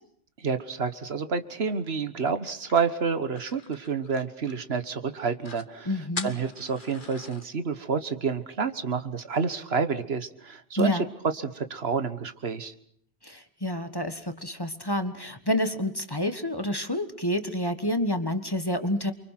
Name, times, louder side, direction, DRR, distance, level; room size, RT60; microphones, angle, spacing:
voice 1, 0.4-5.9 6.2-11.0 11.4-12.7, right 5 dB, 70° right, 10 dB, 1.5 m, -29 dB
sound 1, 2.4-4.8 5.1-5.2 5.4-5.7 6.1-7.5, left 5 dB, 50° left, 1.3 m, -41 dB
voice 2, 5.8-6.3 10.8-11.1 13.2-19.1, left 1 dB, 20° left, 9 dB, 1.5 m, -28 dB
29.0 x 24.0 x 5.9 m, 0.65 s
omnidirectional pair, 1.1 m